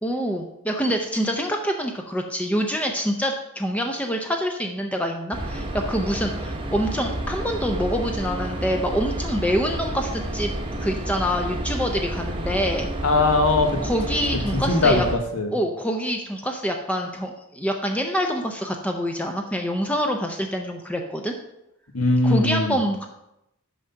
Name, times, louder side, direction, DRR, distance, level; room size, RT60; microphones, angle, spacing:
voice 1, 0.0-12.9 13.8-15.0 15.5-21.3 22.2-23.1, equal, 5° left, 3 dB, 0.5 m, -26 dB
sound 1, 5.3-15.2, right 1 dB, 25° right, 0.9 m, -30 dB
voice 2, 13.0-13.8 14.5-15.5 21.9-22.8, left 2 dB, 70° left, 5 dB, 1.2 m, -20 dB
6.2 x 5.7 x 5.7 m, 0.85 s
head